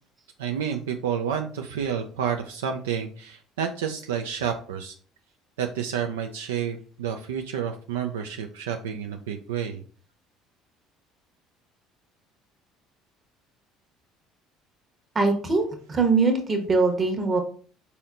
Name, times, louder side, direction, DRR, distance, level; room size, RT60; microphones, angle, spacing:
voice 1, 0.4-4.9 5.6-9.8, right 8 dB, 85° right, 5 dB, 0.3 m, -30 dB
voice 2, 15.1-17.4, right 3 dB, 35° right, 4 dB, 1.1 m, -22 dB
4.1 x 4.1 x 2.5 m, 0.43 s
hypercardioid pair, 65°, 0 cm